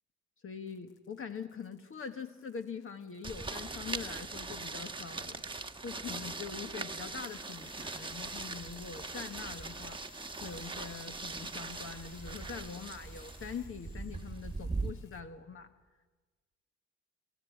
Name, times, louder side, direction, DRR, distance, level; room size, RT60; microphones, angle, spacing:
voice 1, 0.4-5.4 5.8-10.0 10.4-15.7, left 6 dB, 45° left, 6 dB, 1.3 m, -43 dB
sound 1, 0.7-15.2, left 8 dB, 80° left, 2.3 m, -60 dB
sound 2, 3.2-14.9, right 3 dB, 15° right, 1.3 m, -41 dB
29.0 x 14.5 x 9.3 m, 1.3 s
cardioid pair, 90°, 30 cm